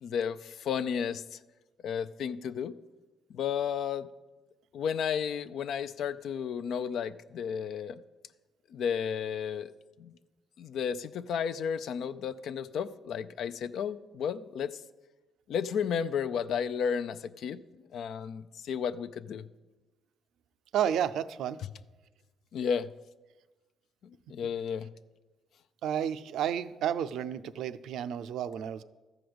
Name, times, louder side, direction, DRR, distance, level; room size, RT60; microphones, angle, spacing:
voice 1, 0.0-1.4 1.8-2.7 3.3-4.1 4.7-8.0 8.7-9.7 10.0-10.1 10.6-14.8 15.5-17.6 17.9-19.5 22.5-22.9 24.0-24.9, left 7 dB, 70° left, 13 dB, 0.4 m, -33 dB
voice 2, 20.7-21.6 25.8-28.8, right 9 dB, 80° right, 12 dB, 0.4 m, -31 dB
13.5 x 5.0 x 7.9 m, 1.2 s
cardioid pair, 90°, 0 cm